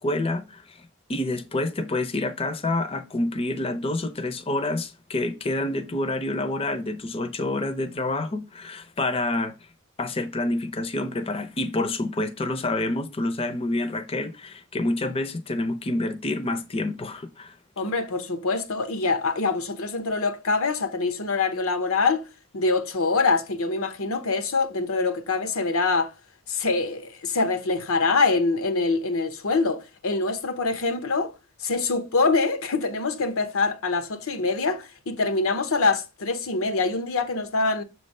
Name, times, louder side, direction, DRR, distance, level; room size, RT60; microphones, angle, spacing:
voice 1, 0.0-9.5 10.0-17.5, left 2 dB, 30° left, 0.6 m, -28 dB
voice 2, 17.8-22.3 22.5-26.1 26.5-31.3 31.6-37.8, left 3 dB, 85° left, 0.9 m, -24 dB
7.1 x 3.2 x 5.3 m
head